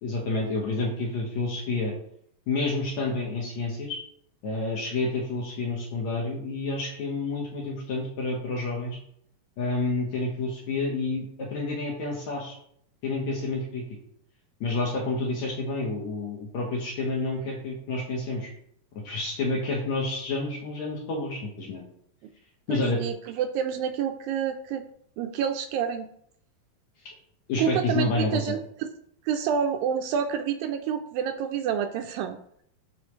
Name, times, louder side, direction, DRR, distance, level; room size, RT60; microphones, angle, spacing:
voice 1, 0.0-1.9 2.5-4.0 4.4-9.0 9.6-12.6 13.0-13.8 14.6-18.5 19.0-21.8 22.7-23.0 27.5-28.3, left 3 dB, 60° left, -2 dB, 2.2 m, -29 dB
voice 2, 22.7-24.8 25.2-26.1 27.6-28.9 29.3-32.4, right 8 dB, 80° right, 6 dB, 2.1 m, -28 dB
12.0 x 4.1 x 3.2 m, 0.67 s
omnidirectional pair, 4.3 m